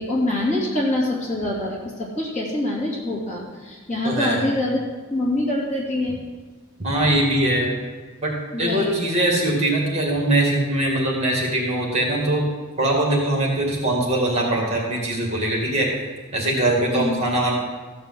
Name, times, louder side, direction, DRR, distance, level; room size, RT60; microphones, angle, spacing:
voice 1, 0.0-4.8 5.1-6.2 8.5-8.9 16.9-17.2, left 1 dB, 35° left, -4 dB, 2.7 m, -25 dB
voice 2, 4.0-4.4 6.8-7.7 8.2-8.3 8.6-12.5 12.8-15.9 16.3-17.5, right 1 dB, 30° right, -1 dB, 2.3 m, -21 dB
14.5 x 5.4 x 7.6 m, 1.4 s
head